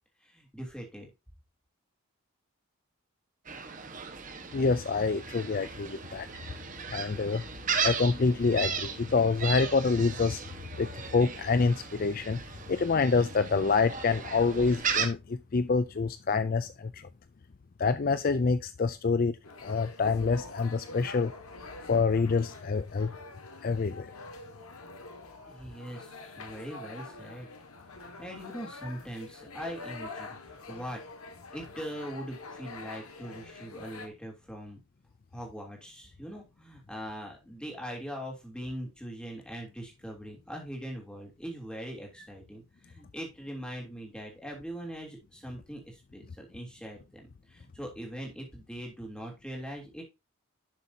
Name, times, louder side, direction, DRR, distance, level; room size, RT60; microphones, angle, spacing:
voice 1, 0.2-1.1 25.5-27.5 28.0-31.0 31.5-34.8 35.3-50.0, equal, 5° left, 3.1 m, -41 dB
Gull seagull, 3.5-15.1, right 6 dB, 35° right, 1.4 m, -36 dB
voice 2, 4.5-6.3 6.9-7.4 7.8-10.4 10.8-12.4 12.7-17.1 17.8-19.4 19.6-21.3 21.9-23.1 23.6-24.1, left 4 dB, 40° left, 0.4 m, -27 dB
sound 1, 19.4-34.1, left 3 dB, 85° left, 1.9 m, -46 dB
11.5 x 6.8 x 2.8 m
head